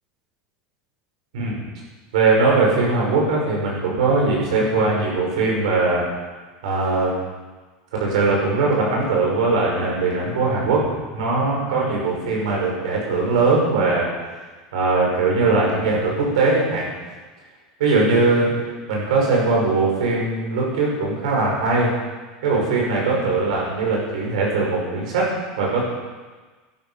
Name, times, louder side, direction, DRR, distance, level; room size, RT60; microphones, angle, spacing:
voice 1, 2.1-6.0 6.6-7.1 8.0-14.1 14.7-16.9 17.8-18.5 18.9-21.9 22.4-25.8, right 3 dB, 90° right, -2 dB, 5.8 m, -20 dB
13.0 x 12.0 x 5.9 m, 1.3 s
supercardioid pair, 125°, 4 cm